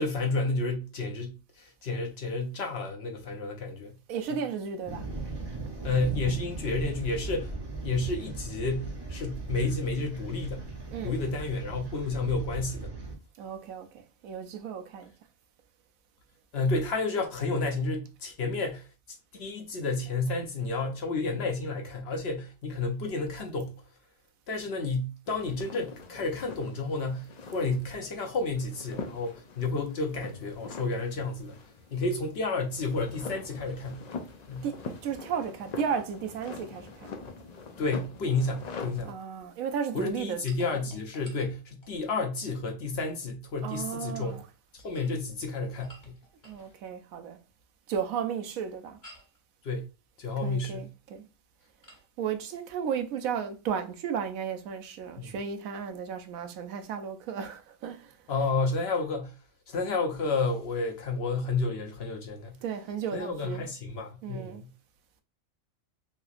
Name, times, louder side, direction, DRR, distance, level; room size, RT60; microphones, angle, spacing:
voice 1, 0.0-4.0 5.8-7.6 7.8-10.7 11.0-12.9 16.5-18.9 19.3-23.8 24.5-31.6 31.9-34.0 34.5-34.7 37.8-39.1 39.9-44.4 44.7-46.0 49.6-49.9 50.2-50.9 55.2-55.3 58.3-59.4 59.7-62.6 63.1-64.7, left 3 dB, 60° left, 0.8 m, -31 dB
voice 2, 4.1-5.1 10.9-11.2 13.4-15.1 34.6-37.2 39.0-40.5 43.6-44.5 46.4-47.4 47.9-49.0 50.4-51.2 52.2-58.2 62.6-63.6 64.2-64.6, right 7 dB, 85° right, 1.0 m, -34 dB
sound 1, 4.9-13.1, right 2 dB, 25° right, 0.6 m, -38 dB
sound 2, 25.3-39.1, left 4 dB, 80° left, 0.3 m, -44 dB
sound 3, 40.5-42.3 44.7-46.7 49.0-49.4 51.8-52.1, equal, 35° left, 1.5 m, -53 dB
3.3 x 2.8 x 2.4 m
omnidirectional pair, 1.4 m